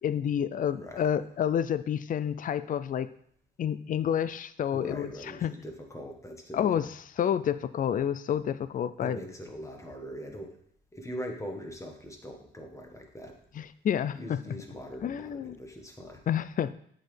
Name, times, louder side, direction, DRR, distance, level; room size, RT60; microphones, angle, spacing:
voice 1, 0.0-3.1 3.6-5.5 6.5-9.2 13.5-14.4 15.0-15.6 16.3-16.7, left 9 dB, 45° left, 15 dB, 0.4 m, -29 dB
voice 2, 4.7-6.6 9.0-10.5 10.9-13.4 14.1-16.2, equal, 15° left, 2 dB, 1.6 m, -41 dB
8.4 x 6.4 x 3.4 m, 0.66 s
cardioid pair, 90°, 20 cm